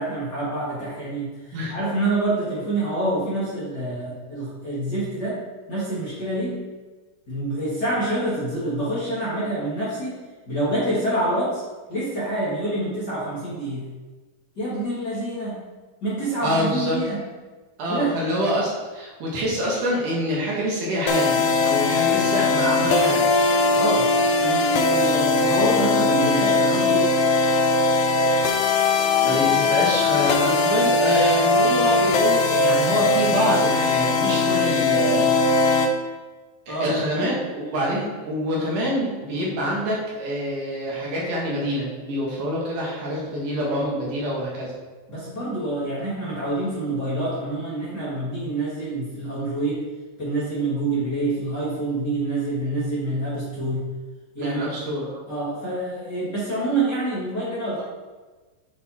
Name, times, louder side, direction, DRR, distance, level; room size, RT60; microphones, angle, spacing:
voice 1, 0.0-5.4 5.7-6.6 7.3-10.2 10.5-11.6 11.9-13.8 14.6-15.6 16.0-17.3 17.9-18.2 23.7-27.1 36.7-37.4 45.1-49.8 50.2-53.8 54.4-54.6 55.3-57.8, right 1 dB, 35° left, -9 dB, 2.1 m, -27 dB
voice 2, 16.4-17.0 17.8-23.3 29.2-35.3 36.7-44.7 54.4-55.2, equal, 65° right, -4 dB, 3.0 m, -26 dB
sound 1, 21.1-35.9, left 3 dB, 80° left, 1.6 m, -20 dB
8.4 x 5.4 x 4.2 m, 1.3 s
omnidirectional pair, 4.0 m